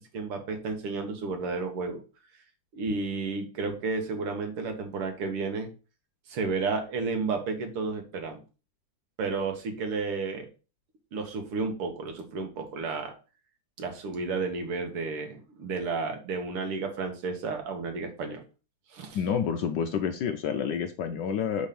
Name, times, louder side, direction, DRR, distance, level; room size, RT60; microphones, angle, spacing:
voice 1, 0.1-2.0 2.7-5.7 6.3-8.4 9.2-10.5 11.1-13.1 13.8-18.4 18.9-19.2, right 4 dB, 85° right, 4 dB, 2.4 m, -32 dB
voice 2, 19.1-21.7, left 7 dB, 70° left, 8 dB, 1.0 m, -29 dB
5.2 x 5.1 x 5.8 m, 0.34 s
omnidirectional pair, 2.4 m